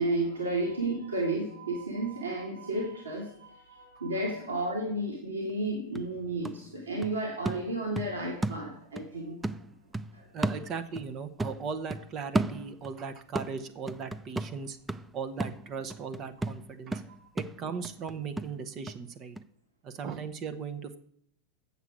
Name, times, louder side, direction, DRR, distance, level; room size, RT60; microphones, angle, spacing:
voice 1, 0.0-9.5 10.1-10.3 17.2-17.3, right 2 dB, 70° right, -1 dB, 1.9 m, -32 dB
sound 1, 5.5-5.6 6.0-9.1 9.4-11.1 11.4-13.0 13.4-19.0 19.4-19.5, right 2 dB, 10° right, 0.4 m, -35 dB
voice 2, 10.3-14.8 15.1-17.0 17.3-19.4 19.8-21.0, right 5 dB, 30° right, 10 dB, 0.8 m, -38 dB
8.2 x 6.8 x 6.1 m, 0.69 s
figure-of-eight pair, 90°, 0 cm